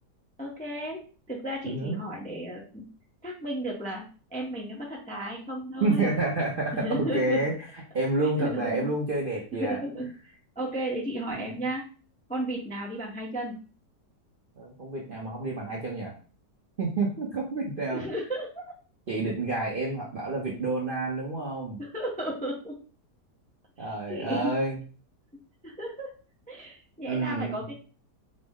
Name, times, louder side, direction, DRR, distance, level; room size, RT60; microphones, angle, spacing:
voice 1, 0.4-2.8 3.2-4.0 4.3-6.1 6.7-7.4 8.2-8.9 9.6-10.1 10.6-11.9 12.3-13.5 17.9-18.6 21.8-22.8 23.8-24.5 25.6-26.1 26.5-27.7, right 1 dB, 10° left, -3 dB, 0.4 m, -34 dB
voice 2, 1.6-2.0 5.8-6.9 7.1-7.5 7.9-9.8 11.3-11.5 14.6-16.2 16.8-18.0 19.1-21.8 23.8-24.8 27.1-27.6, right 2 dB, 50° right, -4 dB, 0.6 m, -29 dB
5.1 x 2.0 x 3.5 m, 0.39 s
omnidirectional pair, 1.8 m